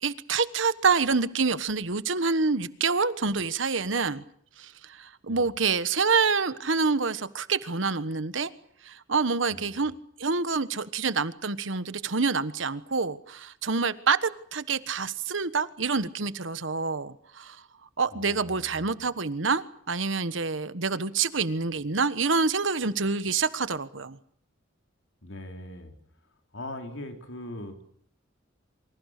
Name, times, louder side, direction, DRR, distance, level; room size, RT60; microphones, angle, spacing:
voice 1, 0.0-4.2 4.6-8.5 8.8-9.9 10.2-17.6 18.0-24.2, right 4 dB, 80° right, 1.3 m, -27 dB
voice 2, 18.1-19.0 25.2-25.9 26.5-27.9, left 1 dB, 80° left, 4.3 m, -41 dB
27.5 x 25.0 x 6.7 m
head